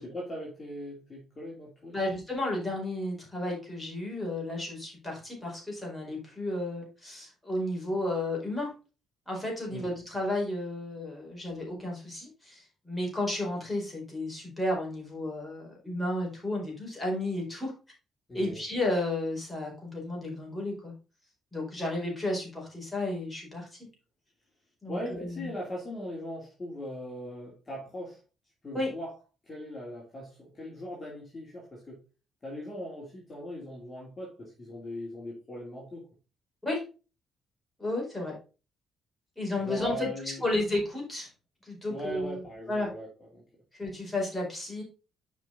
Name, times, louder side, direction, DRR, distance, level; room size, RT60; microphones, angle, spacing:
voice 1, 0.0-2.0 9.7-9.9 18.3-18.6 24.9-28.2 28.6-29.1 29.4-32.0 32.4-36.1 39.6-40.4 41.9-43.4, left 1 dB, 30° left, -4 dB, 2.9 m, -40 dB
voice 2, 1.9-8.7 9.3-17.7 18.3-20.9 21.5-23.7 24.8-25.5 28.7-28.9 36.6-36.8 37.8-38.3 39.4-40.1 40.4-41.3 41.6-42.9 43.7-44.8, left 1 dB, 10° left, -2 dB, 4.7 m, -32 dB
7.3 x 5.4 x 3.9 m, 0.33 s
cardioid pair, 90°, 0 cm